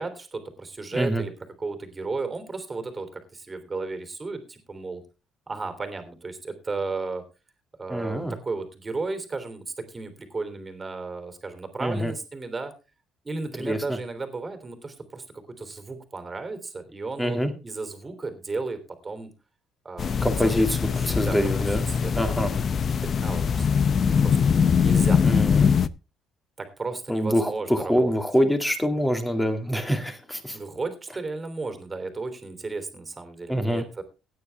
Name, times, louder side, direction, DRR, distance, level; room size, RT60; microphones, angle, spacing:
voice 1, 0.0-5.0 5.5-7.2 7.8-12.7 13.2-19.3 19.8-20.1 20.4-22.7 23.0-23.9 24.2-25.3 26.6-28.1 30.5-34.0, right 3 dB, 20° right, 8 dB, 3.1 m, -34 dB
voice 2, 0.9-1.2 7.9-8.3 11.8-12.1 13.6-13.8 17.2-17.5 20.2-20.7 21.1-21.8 22.2-22.5 25.2-25.7 27.1-30.6 33.5-33.8, equal, 5° left, 7 dB, 2.3 m, -25 dB
sound 1, 20.0-25.9, left 6 dB, 40° left, 0.7 m, -22 dB
16.0 x 9.8 x 3.5 m, 0.29 s
cardioid pair, 140°, 0 cm